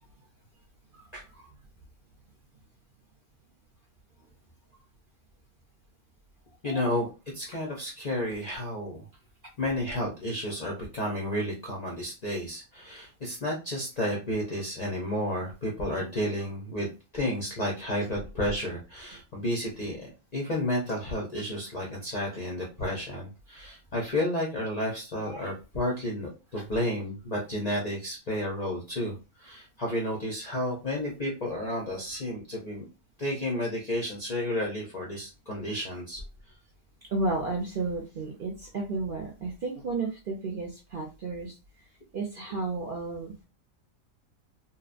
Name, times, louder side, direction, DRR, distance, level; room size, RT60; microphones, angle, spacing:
voice 1, 6.6-7.1 7.3-9.1 9.6-20.1 20.3-32.8 33.2-36.2, left 1 dB, 50° left, -2 dB, 0.4 m, -31 dB
voice 2, 37.1-41.5 42.1-43.3, right 3 dB, 60° right, 0 dB, 0.5 m, -33 dB
2.8 x 2.0 x 2.4 m, 0.30 s
omnidirectional pair, 1.4 m